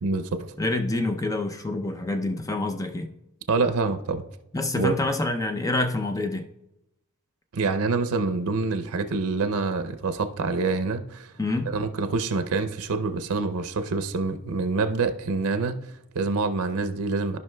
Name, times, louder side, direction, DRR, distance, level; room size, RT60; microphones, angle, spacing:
voice 1, 0.0-0.5 3.5-4.2 4.7-5.0 7.5-11.3 11.7-17.4, right 3 dB, 90° right, 0.6 m, -26 dB
voice 2, 0.6-3.1 4.5-6.5 11.4-11.7, left 2 dB, 15° left, 0.5 m, -27 dB
14.0 x 5.3 x 2.2 m
head